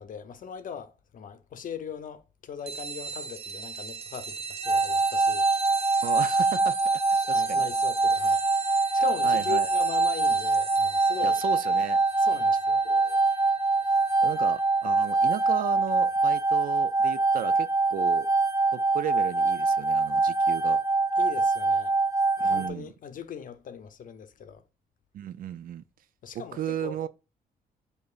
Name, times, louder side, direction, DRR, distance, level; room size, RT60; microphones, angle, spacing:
voice 1, 0.0-5.5 7.2-8.4 8.9-11.4 12.2-12.8 13.9-14.0 21.2-21.9 22.4-24.6 26.2-27.0, left 7 dB, 60° left, 0.7 m, -39 dB
sound 1, 2.7-14.8, right 5 dB, 40° right, 1.0 m, -38 dB
sound 2, 4.6-22.7, right 3 dB, 20° right, 0.7 m, -24 dB
voice 2, 6.0-7.0 7.3-7.6 9.2-9.7 11.2-12.0 12.8-13.2 14.2-18.3 18.7-20.8 22.4-22.9 25.1-25.8 26.3-27.1, right 10 dB, 65° right, 0.4 m, -35 dB
6.6 x 2.6 x 2.4 m
cardioid pair, 90°, 16 cm